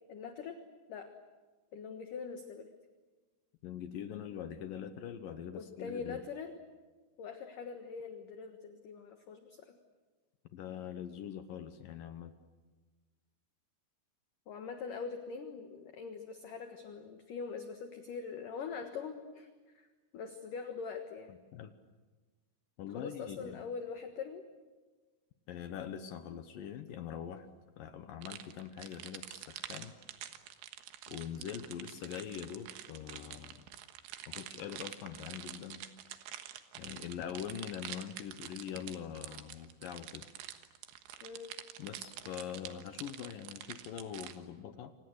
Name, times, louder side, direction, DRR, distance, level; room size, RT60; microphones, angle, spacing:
voice 1, 0.1-0.6 0.9-1.1 1.7-2.7 5.5-6.6 7.2-9.8 14.5-19.5 19.7-19.9 20.1-21.3 22.9-24.5 41.2-41.5, left 5 dB, 60° left, 6 dB, 2.4 m, -43 dB
voice 2, 3.6-6.2 10.5-12.3 21.3-21.7 22.8-23.6 25.5-27.5 27.8-29.9 31.1-33.6 34.3-35.9 36.8-40.3 41.8-44.9, left 9 dB, 75° left, 9 dB, 2.0 m, -43 dB
sound 1, 28.2-44.4, right 12 dB, 80° right, 3.6 m, -47 dB
29.0 x 26.0 x 8.0 m, 1.3 s
omnidirectional pair, 5.5 m